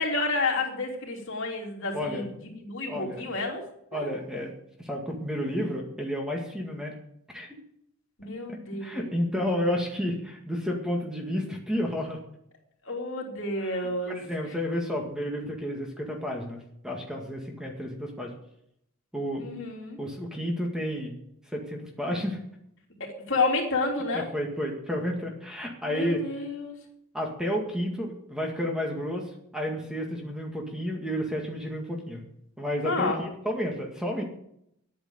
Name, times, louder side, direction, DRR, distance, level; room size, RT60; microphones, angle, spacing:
voice 1, 0.0-3.6 3.9-4.1 8.2-9.1 12.8-14.5 19.4-20.0 23.0-24.3 25.8-26.7 32.8-33.2, left 3 dB, 60° left, 0 dB, 3.4 m, -30 dB
voice 2, 1.9-2.3 2.9-3.3 3.9-4.5 4.8-6.9 7.3-7.5 8.5-12.2 13.6-13.7 14.1-18.3 19.1-19.5 20.0-21.1 21.5-22.4 24.1-26.2 27.1-32.2 32.6-34.2, equal, 5° right, 1 dB, 1.9 m, -31 dB
10.5 x 9.3 x 7.9 m, 0.74 s
head